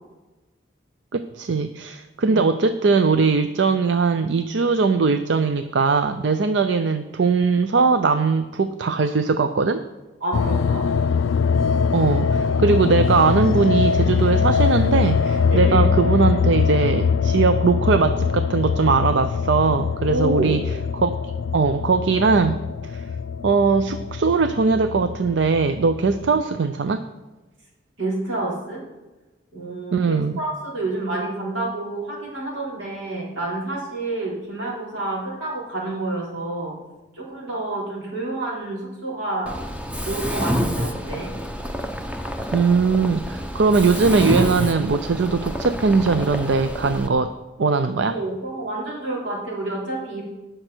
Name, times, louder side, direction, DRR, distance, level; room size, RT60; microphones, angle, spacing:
voice 1, 1.1-9.8 11.9-20.6 20.9-21.2 21.5-23.0 23.4-27.1 29.9-30.3 42.5-47.3 47.6-48.2, right 4 dB, 70° right, 10 dB, 0.5 m, -20 dB
voice 2, 10.2-10.9 15.5-15.8 20.1-20.6 28.0-28.8 29.5-36.8 37.1-39.6 40.0-41.3 48.1-50.2, right 2 dB, 85° right, -5 dB, 4.6 m, -28 dB
sound 1, 10.3-26.4, left 6 dB, 90° left, 0.4 m, -22 dB
Mechanisms, 39.5-47.1, equal, 5° right, 0.7 m, -28 dB
19.0 x 6.5 x 4.5 m, 1.1 s
head